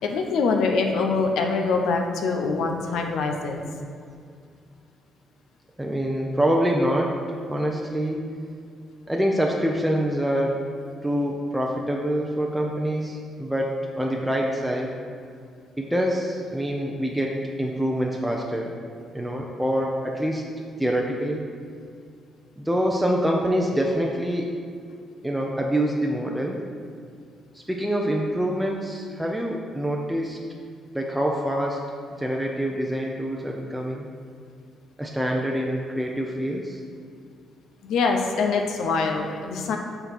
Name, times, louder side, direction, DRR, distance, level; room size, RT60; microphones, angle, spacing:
voice 1, 0.0-3.6 37.8-39.8, left 4 dB, 80° left, 3 dB, 0.7 m, -24 dB
voice 2, 5.8-7.1 7.5-8.3 9.1-10.6 11.0-14.9 15.8-18.7 19.1-20.5 20.8-21.4 22.6-24.5 25.2-26.6 27.5-30.4 30.9-31.8 32.2-34.1 35.0-36.8, equal, 5° right, -1 dB, 0.7 m, -25 dB
6.8 x 3.9 x 5.9 m, 2.3 s
cardioid pair, 90°, 0 cm